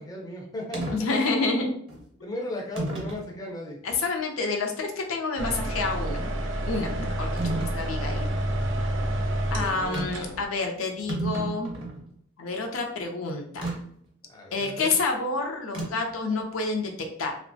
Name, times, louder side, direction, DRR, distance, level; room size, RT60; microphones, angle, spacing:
voice 1, 0.0-0.9 2.2-3.8 9.4-10.0 14.3-14.9, left 1 dB, 20° left, 0 dB, 0.4 m, -36 dB
sound 1, 0.7-1.0 1.9-2.0 2.8-3.3 3.9-4.0 7.4-7.8 9.9-10.3 10.6-10.7 10.9-12.0 13.6-13.8 15.7-16.1, right 2 dB, 25° right, 0.6 m, -31 dB
voice 2, 0.9-1.7 2.2-2.3 3.8-6.3 6.7-8.4 9.5-11.7 12.4-13.8 14.5-17.3, left 3 dB, 85° left, 3 dB, 0.5 m, -29 dB
sound 2, 5.4-10.5, right 1 dB, 65° right, 0.4 m, -29 dB
2.8 x 2.1 x 2.6 m, 0.65 s
head